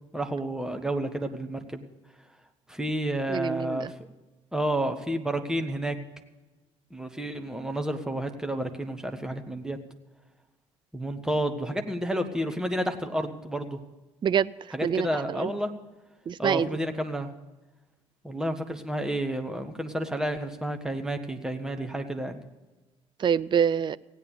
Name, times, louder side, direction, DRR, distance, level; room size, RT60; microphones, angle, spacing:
voice 1, 0.1-1.8 2.7-3.9 4.5-6.0 6.9-9.8 10.9-13.8 14.7-15.7 16.4-17.3 18.2-22.4, right 1 dB, 5° right, 5 dB, 1.6 m, -30 dB
voice 2, 3.3-3.9 14.2-14.5 14.8-15.5 16.3-16.7 23.2-24.0, right 8 dB, 30° right, 17 dB, 0.4 m, -26 dB
16.5 x 9.1 x 6.7 m, 1.1 s
figure-of-eight pair, 50°, 16 cm